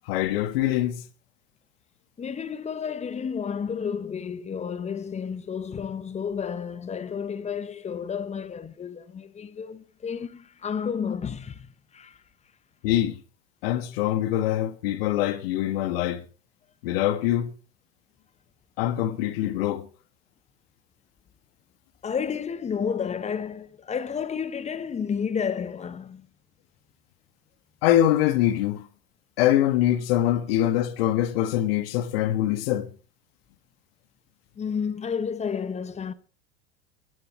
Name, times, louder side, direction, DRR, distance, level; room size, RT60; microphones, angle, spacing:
voice 1, 0.1-1.0 12.8-13.2 13.6-16.2 16.8-17.5 18.8-19.9 27.8-28.8 29.4-32.9, left 13 dB, 60° left, 1.5 m, -24 dB
voice 2, 2.2-12.2 22.0-26.3 34.6-36.1, left 7 dB, 20° left, 1.0 m, -31 dB
22.0 x 11.5 x 3.2 m
hypercardioid pair, 90°, 33 cm